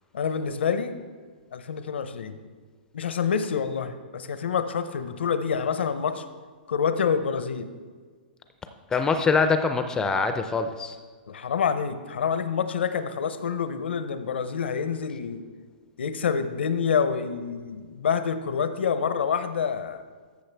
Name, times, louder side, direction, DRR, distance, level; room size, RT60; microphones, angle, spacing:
voice 1, 0.1-0.9 1.5-2.4 2.9-6.2 6.7-7.7 11.3-15.5 16.0-20.0, left 6 dB, 80° left, 11 dB, 0.6 m, -27 dB
voice 2, 8.9-10.9, left 4 dB, 10° left, 8 dB, 0.4 m, -24 dB
13.5 x 6.6 x 3.4 m, 1.5 s
hypercardioid pair, 140°, 6 cm